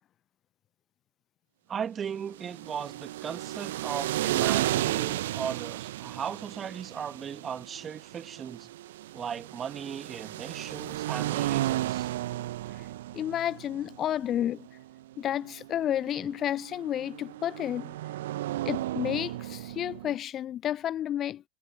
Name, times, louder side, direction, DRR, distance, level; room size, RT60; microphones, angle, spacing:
voice 1, 1.7-8.7 9.1-12.1, right 7 dB, 20° right, 2.6 m, -37 dB
sound 1, 2.2-20.1, right 15 dB, 55° right, 1.6 m, -34 dB
voice 2, 13.1-14.7 15.2-17.9 18.7-21.4, left 11 dB, 30° left, 0.4 m, -31 dB
figure-of-eight pair, 90°, 0 cm